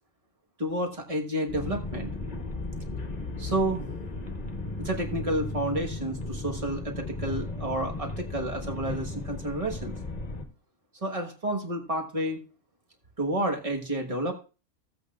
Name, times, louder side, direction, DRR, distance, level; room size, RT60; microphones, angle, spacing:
voice 1, 0.6-2.1 3.4-3.9 4.8-9.9 11.0-12.4 13.2-14.3, right 1 dB, 30° right, 2 dB, 1.4 m, -30 dB
sound 1, 1.5-10.5, left 2 dB, 35° left, 1.2 m, -35 dB
15.5 x 8.2 x 2.4 m, 0.34 s
omnidirectional pair, 1.3 m